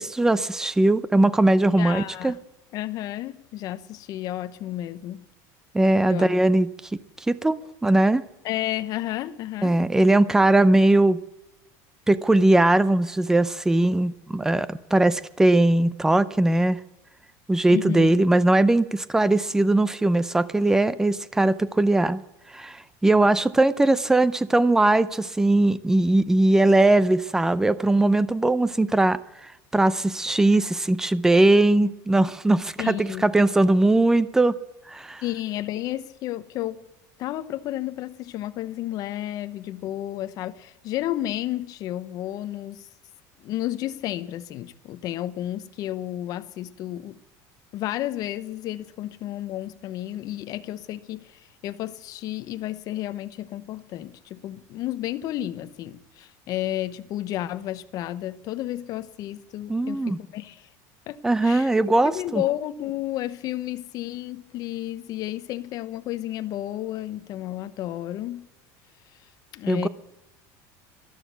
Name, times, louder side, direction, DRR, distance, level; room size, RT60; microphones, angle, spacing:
voice 1, 0.0-2.3 5.7-6.7 7.3-8.2 9.6-11.2 12.1-16.8 17.5-22.2 22.5-34.5 34.9-35.2 59.7-60.2 61.2-62.4 69.7-69.9, right 2 dB, 5° right, 0.5 m, -20 dB
voice 2, 1.8-2.4 2.7-5.2 6.1-6.3 8.4-9.8 17.7-18.2 32.8-33.3 35.2-36.9 37.2-42.9 43.4-47.2 47.7-60.7 61.1-61.7 62.0-68.5 69.5-69.9, left 13 dB, 45° left, 0.8 m, -32 dB
13.5 x 12.0 x 8.1 m
cardioid pair, 155°, 9 cm